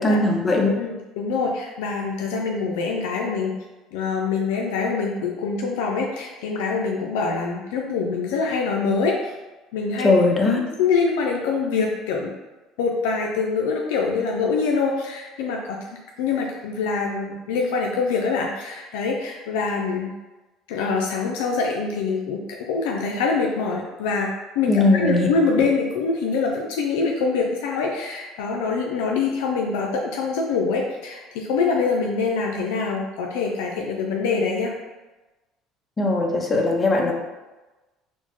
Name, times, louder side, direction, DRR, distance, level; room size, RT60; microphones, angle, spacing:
voice 1, 0.0-0.7 10.0-10.6 24.7-25.3 36.0-37.1, left 2 dB, 25° left, 1 dB, 0.7 m, -19 dB
voice 2, 0.8-3.5 3.9-9.3 9.7-10.1 10.8-12.3 12.8-15.8 16.2-20.1 20.7-24.3 24.6-34.7, left 4 dB, 90° left, 0 dB, 0.4 m, -24 dB
4.3 x 2.1 x 3.0 m, 1.1 s
supercardioid pair, 100°, 0 cm